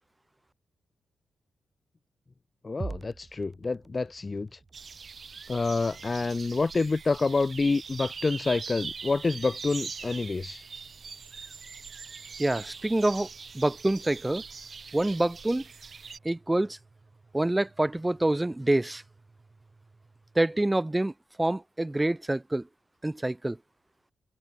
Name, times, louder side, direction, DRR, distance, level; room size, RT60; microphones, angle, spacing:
voice 1, 2.6-4.5 5.5-10.6, left 3 dB, 35° left, 0.6 m, -28 dB
sound 1, 2.8-21.0, right 3 dB, 30° right, 2.6 m, -51 dB
sound 2, 4.7-16.2, right 5 dB, 50° right, 1.1 m, -42 dB
voice 2, 12.4-13.3 13.5-14.4 14.9-15.6 16.2-16.8 17.3-19.0 20.4-21.1 21.4-22.7 23.0-23.6, right 1 dB, 15° right, 0.3 m, -26 dB
open air
cardioid pair, 75°, 0 cm